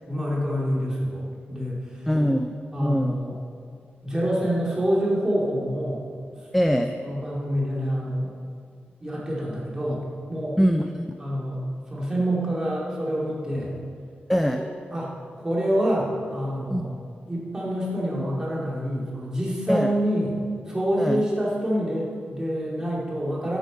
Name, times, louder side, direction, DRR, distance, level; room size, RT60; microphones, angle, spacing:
voice 1, 0.1-2.0 2.7-3.4 4.0-6.1 7.0-8.4 9.0-10.7 11.2-11.6 11.9-13.7 14.5-14.6 14.9-17.0 17.3-20.3 20.7-23.6, equal, 15° right, -5 dB, 2.6 m, -27 dB
voice 2, 2.1-3.2 6.5-6.9 10.6-11.0 14.3-14.6 16.7-16.8 19.7-19.9 21.0-21.2, equal, ahead, 6 dB, 0.4 m, -23 dB
12.0 x 8.3 x 5.2 m, 2.2 s
wide cardioid pair, 160°, 4 cm